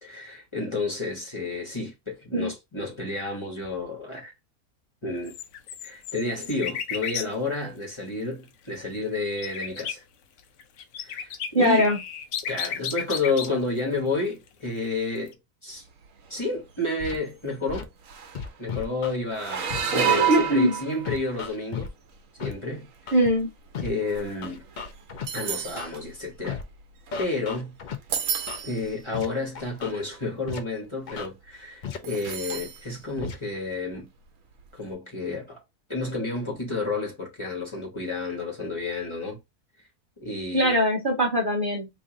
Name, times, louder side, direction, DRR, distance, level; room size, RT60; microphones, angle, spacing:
voice 1, 0.0-4.3 5.0-5.4 5.8-10.0 11.0-11.9 12.5-15.4 15.6-15.8 16.3-17.9 18.6-21.9 22.4-23.1 23.8-24.6 25.3-26.6 27.2-27.8 28.6-34.1 34.7-35.6 35.9-39.4 40.2-40.7, left 3 dB, 20° left, 1.3 m, -30 dB
sound 1, 5.1-7.3 9.0-9.9 10.4-13.5 14.3-14.5 15.3-15.4, left 8 dB, 75° left, 1.0 m, -33 dB
voice 2, 11.5-12.0 20.3-20.7 23.1-23.5 40.5-41.9, equal, 45° right, 0.8 m, -21 dB
sound 2, 16.0-16.4 16.8-17.0 17.7-17.8 18.0-18.6 19.3-21.5 22.1-22.4 23.1-27.6 27.9-28.9 29.6-29.7 29.9-30.3 32.0-32.8 33.2-33.3 34.6-34.7, right 7 dB, 70° right, 1.1 m, -30 dB
Scratching (performance technique), 17.0-17.2 17.7-17.8 18.3-19.2 19.7-19.8 20.4-20.5 21.0-21.9 22.4-22.5 23.1-23.3 23.7-23.9 24.4-25.3 25.8-25.9 26.4-26.6 27.1-28.0 28.5-28.6 29.1-29.3 29.5-29.9 30.5-30.6 31.1-31.3 31.8-32.0 32.5-32.6 33.2-33.3, left 6 dB, 55° left, 0.5 m, -34 dB
3.0 x 2.7 x 3.7 m
omnidirectional pair, 1.5 m